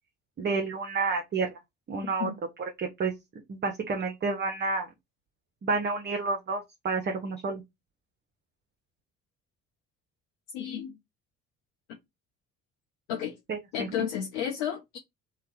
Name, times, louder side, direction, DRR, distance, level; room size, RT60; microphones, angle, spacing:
voice 1, 0.4-1.6 1.9-2.3 2.8-3.1 3.5-4.9 5.6-7.6 13.5-13.9, right 4 dB, 25° right, 0.7 m, -30 dB
voice 2, 2.0-2.4 10.5-11.0 13.1-13.4 13.7-15.0, left 9 dB, 60° left, 0.7 m, -32 dB
2.7 x 2.2 x 3.2 m
figure-of-eight pair, 45°, 42 cm